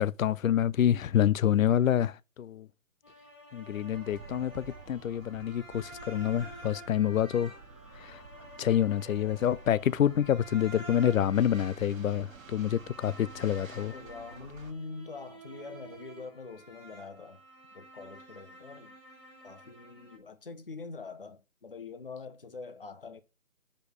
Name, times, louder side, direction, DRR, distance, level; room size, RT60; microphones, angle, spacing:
voice 1, 0.0-2.7 3.5-7.5 7.9-8.2 8.6-13.9, left 10 dB, 75° left, 0.5 m, -27 dB
sound 1, 3.0-20.2, right 1 dB, 20° left, 1.7 m, -50 dB
sound 2, 3.9-14.7, right 4 dB, 75° right, 1.3 m, -51 dB
voice 2, 13.9-17.4 17.7-18.9 19.4-23.2, left 4 dB, 40° left, 0.8 m, -44 dB
6.4 x 5.2 x 5.0 m
hypercardioid pair, 180°, 41 cm